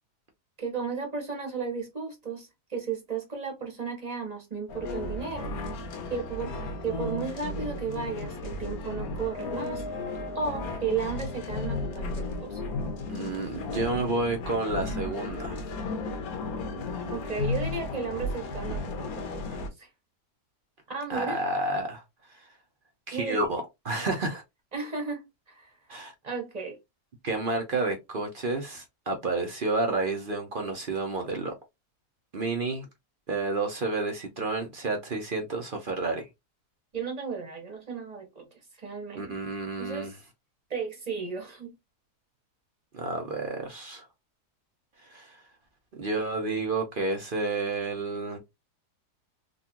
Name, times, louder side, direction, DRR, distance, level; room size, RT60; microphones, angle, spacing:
voice 1, 0.6-5.5 6.1-6.6 6.8-9.8 10.3-12.7 17.1-19.9 20.9-21.4 23.1-23.5 24.7-25.7 26.2-26.8 36.9-38.5 38.8-39.3 39.8-40.2 40.7-41.7, right 5 dB, 30° right, 1.1 m, -34 dB
sound 1, 4.7-19.7, left 2 dB, 65° left, 1.3 m, -34 dB
voice 2, 13.1-15.6 21.1-22.0 22.3-22.5 23.1-24.4 25.9-26.1 27.2-31.5 32.3-32.9 33.3-36.3 39.1-40.1 42.9-44.0 45.0-45.4 46.0-48.4, right 3 dB, 45° right, 0.7 m, -30 dB
3.9 x 2.5 x 2.8 m
omnidirectional pair, 1.7 m